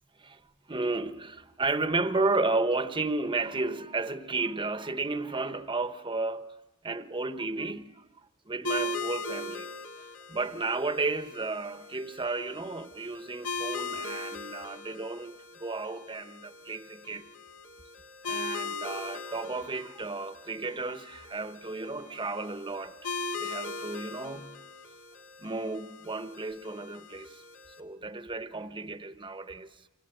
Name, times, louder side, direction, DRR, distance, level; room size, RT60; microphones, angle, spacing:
voice 1, 0.7-6.5 6.8-8.0 8.5-9.7 10.3-17.3 18.2-22.9 23.4-24.6 25.4-27.4 27.8-29.8, right 3 dB, 25° right, 1.1 m, -33 dB
sound 1, 8.6-27.8, left 3 dB, 70° left, 1.9 m, -39 dB
29.0 x 26.0 x 7.9 m
head